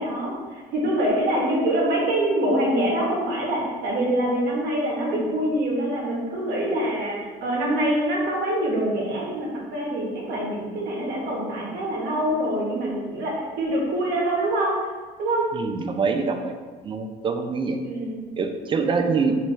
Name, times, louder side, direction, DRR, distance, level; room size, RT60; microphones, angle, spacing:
voice 1, 0.0-14.8 15.2-15.4 17.8-18.2, right 1 dB, 70° right, -3 dB, 1.1 m, -25 dB
voice 2, 15.5-16.6 16.8-17.8 18.4-19.4, right 4 dB, 30° right, 6 dB, 0.3 m, -24 dB
3.6 x 2.8 x 3.1 m, 1.4 s
cardioid pair, 110°, 17 cm